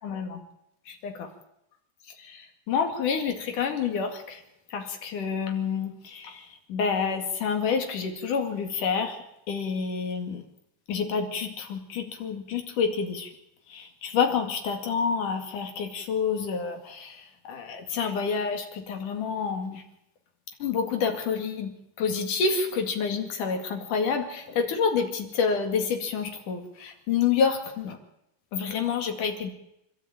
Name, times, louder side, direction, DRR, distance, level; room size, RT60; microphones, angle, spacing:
voice 1, 0.0-0.4 0.9-1.1 2.2-4.4 4.7-9.2 9.5-10.4 10.9-13.3 13.7-19.8 20.6-28.0 28.5-29.5, left 6 dB, 50° left, 4 dB, 3.2 m, -28 dB
27.5 x 12.5 x 9.1 m, 0.81 s
omnidirectional pair, 5.6 m